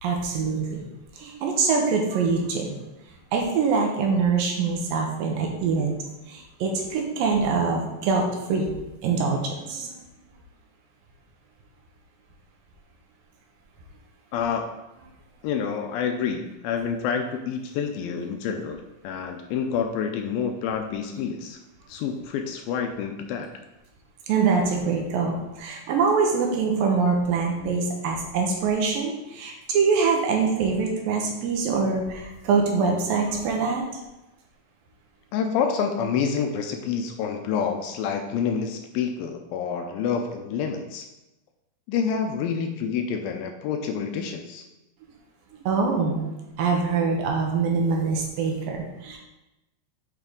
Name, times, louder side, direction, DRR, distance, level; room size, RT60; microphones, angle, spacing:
voice 1, 0.0-0.8 1.2-2.8 3.3-5.9 6.3-8.7 9.0-9.9 24.3-33.8 45.7-49.2, right 5 dB, 75° right, 1 dB, 2.5 m, -24 dB
voice 2, 14.3-14.7 15.4-21.6 21.9-23.5 35.3-41.1 41.9-44.6, left 6 dB, 80° left, 5 dB, 2.2 m, -28 dB
8.2 x 4.9 x 3.7 m, 0.97 s
omnidirectional pair, 4.4 m